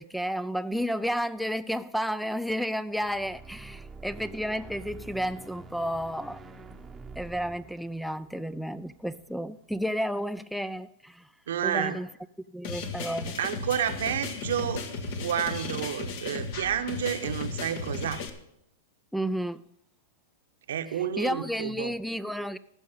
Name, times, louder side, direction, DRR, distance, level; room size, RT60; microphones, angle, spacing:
voice 1, 0.0-6.4 7.2-11.3 11.6-12.1 12.5-13.4 19.1-19.6 20.9-22.6, equal, ahead, 0.4 m, -32 dB
sound 1, 3.0-9.3, right 3 dB, 15° right, 0.9 m, -47 dB
voice 2, 11.5-12.0 13.4-14.8 15.2-18.2 20.7-21.9, right 9 dB, 70° right, 0.9 m, -30 dB
sound 2, 12.6-18.3, left 4 dB, 55° left, 1.4 m, -35 dB
14.5 x 6.2 x 7.2 m
hypercardioid pair, 105°, 0 cm